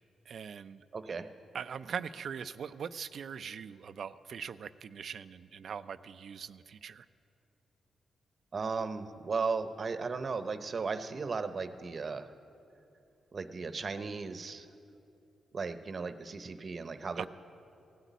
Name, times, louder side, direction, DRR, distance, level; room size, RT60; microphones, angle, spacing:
voice 1, 0.3-0.8 1.5-7.0 17.2-17.3, right 7 dB, 65° right, 14 dB, 0.4 m, -41 dB
voice 2, 0.9-1.3 8.5-12.3 13.3-14.7 15.5-17.3, right 4 dB, 50° right, 10 dB, 0.8 m, -36 dB
16.5 x 8.2 x 9.3 m, 2.7 s
cardioid pair, 70°, 0 cm